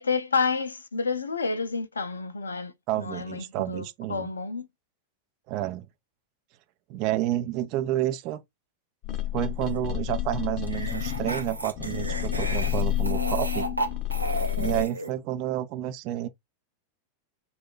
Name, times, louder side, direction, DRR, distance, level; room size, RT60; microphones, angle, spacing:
voice 1, 0.0-4.7, left 4 dB, 75° left, 0.5 m, -30 dB
voice 2, 2.9-4.3 5.5-5.9 6.9-8.4 9.3-13.7 14.6-16.3, right 14 dB, 40° right, 0.5 m, -30 dB
sound 1, 9.0-14.8, left 13 dB, 40° left, 0.6 m, -30 dB
sound 2, 9.6-9.8 10.6-15.1, right 2 dB, 85° right, 0.6 m, -33 dB
2.7 x 2.4 x 3.7 m
figure-of-eight pair, 90°, 0 cm